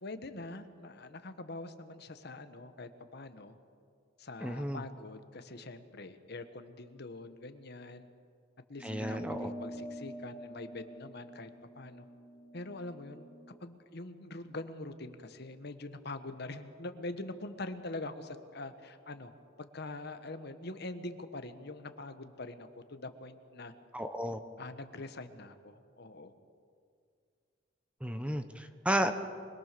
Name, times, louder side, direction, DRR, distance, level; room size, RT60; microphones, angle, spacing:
voice 1, 0.0-3.6 4.2-8.1 8.7-11.5 11.7-12.1 12.5-13.3 13.6-19.3 19.6-23.7 24.6-26.3, left 2 dB, 60° left, 9 dB, 1.3 m, -44 dB
voice 2, 4.4-4.8 8.8-9.5 23.9-24.4 28.0-29.1, right 1 dB, 5° right, 8 dB, 1.0 m, -33 dB
sound 1, 8.8-13.6, equal, 35° left, 2.9 m, -45 dB
24.5 x 21.5 x 6.8 m, 2.2 s
head